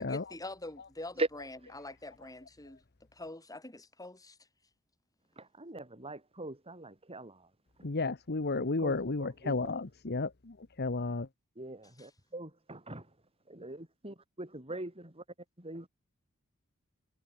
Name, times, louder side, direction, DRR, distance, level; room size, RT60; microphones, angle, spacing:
voice 1, 0.0-2.8 3.1-4.4 12.0-12.1, left 2 dB, 15° left, 7.4 m, -45 dB
voice 2, 5.4-7.5 8.5-9.7 11.6-13.1 13.5-15.2 15.6-15.9, right 2 dB, 25° right, 7.3 m, -41 dB
voice 3, 7.8-11.3, left 3 dB, 50° left, 1.1 m, -33 dB
head